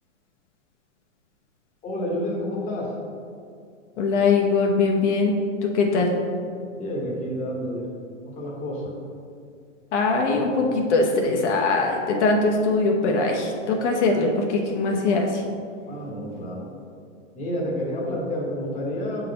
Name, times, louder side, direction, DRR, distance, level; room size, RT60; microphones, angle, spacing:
voice 1, 1.8-2.9 6.8-7.9 8.2-8.9 15.9-16.7 17.3-19.3, equal, 20° left, -3 dB, 1.0 m, -29 dB
voice 2, 4.0-5.3 5.6-6.1 9.9-15.4, left 3 dB, 60° left, 1 dB, 0.9 m, -21 dB
6.4 x 4.0 x 3.9 m, 2.3 s
hypercardioid pair, 130°, 39 cm